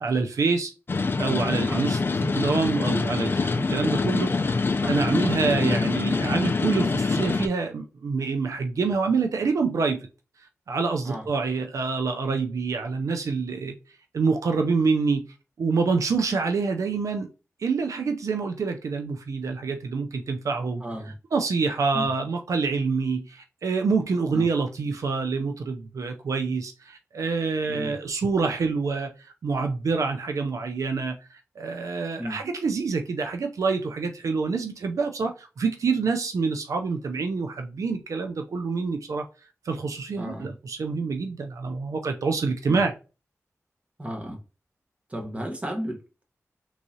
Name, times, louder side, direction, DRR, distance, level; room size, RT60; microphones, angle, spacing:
voice 1, 0.0-0.7 1.2-4.3 4.9-10.1 10.7-13.8 14.1-15.3 15.6-17.3 17.6-20.8 21.3-29.1 29.4-31.2 31.6-39.3 39.7-42.9, right 4 dB, 80° right, 0.4 m, -26 dB
sound 1, 0.9-7.5, left 4 dB, 40° left, 0.4 m, -25 dB
voice 2, 20.8-21.1 21.9-22.1 24.3-24.5 27.7-27.9 32.2-32.4 40.2-40.5 42.7-42.8 44.0-44.4 45.1-46.2, equal, 25° right, 1.0 m, -34 dB
3.5 x 3.1 x 2.7 m
wide cardioid pair, 70°, 6 cm